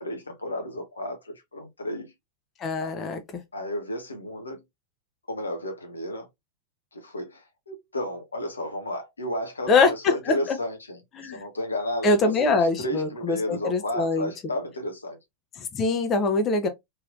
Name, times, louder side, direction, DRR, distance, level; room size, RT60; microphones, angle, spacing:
voice 1, 0.0-2.1 2.8-2.9 3.5-4.6 5.3-6.3 6.9-15.2, left 1 dB, 75° left, 0.7 m, -32 dB
voice 2, 2.6-3.2 9.7-10.6 11.2-11.4 12.0-14.3 15.6-16.7, left 3 dB, 30° left, 0.7 m, -23 dB
3.1 x 2.9 x 2.4 m
figure-of-eight pair, 90°, 0 cm